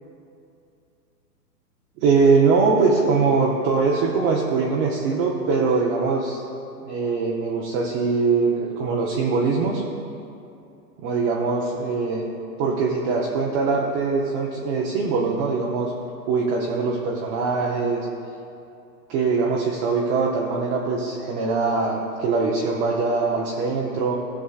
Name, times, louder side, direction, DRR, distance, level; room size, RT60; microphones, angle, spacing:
voice 1, 2.0-6.4 6.9-9.8 11.0-12.3 12.6-15.9 16.3-18.0 19.1-24.2, right 4 dB, 20° right, -3 dB, 0.5 m, -22 dB
16.0 x 6.2 x 2.3 m, 2.6 s
hypercardioid pair, 125°, 50 cm